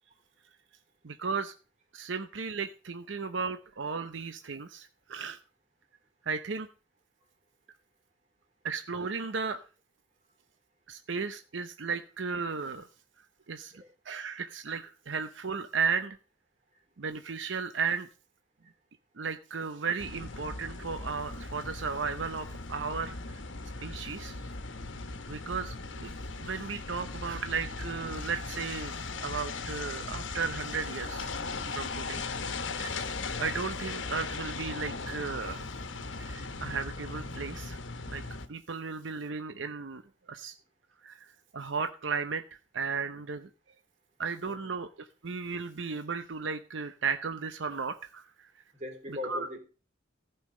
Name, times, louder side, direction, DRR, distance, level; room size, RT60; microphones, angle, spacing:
voice 1, 1.0-1.5 1.9-5.4 6.2-6.7 8.6-9.6 10.9-12.9 13.5-13.7 14.0-16.2 17.0-18.1 19.2-23.4 23.7-24.5 25.3-26.1 26.4-31.3 31.7-32.2 32.8-35.7 36.2-37.8 38.1-38.2 38.5-40.0 40.3-40.5 41.0-42.4 42.7-43.5 44.2-48.5 49.2-49.5, right 5 dB, 75° right, 0.7 m, -35 dB
sound 1, 20.0-38.5, left 3 dB, 80° left, 1.3 m, -38 dB
voice 2, 48.7-49.6, left 2 dB, 35° right, 3.2 m, -40 dB
15.0 x 5.7 x 6.4 m
head